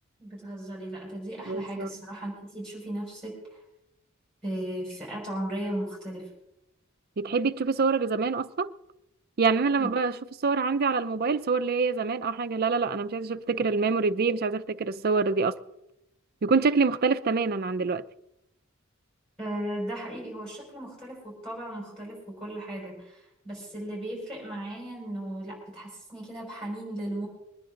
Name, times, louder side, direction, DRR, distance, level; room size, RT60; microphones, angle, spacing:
voice 1, 0.2-3.6 4.4-6.3 9.8-9.9 19.4-27.3, right 1 dB, 5° left, 5.5 m, -36 dB
voice 2, 1.5-1.9 7.2-8.7 9.4-10.2 10.4-15.6 16.4-18.0, right 4 dB, 50° right, 0.5 m, -25 dB
22.0 x 9.9 x 3.8 m
head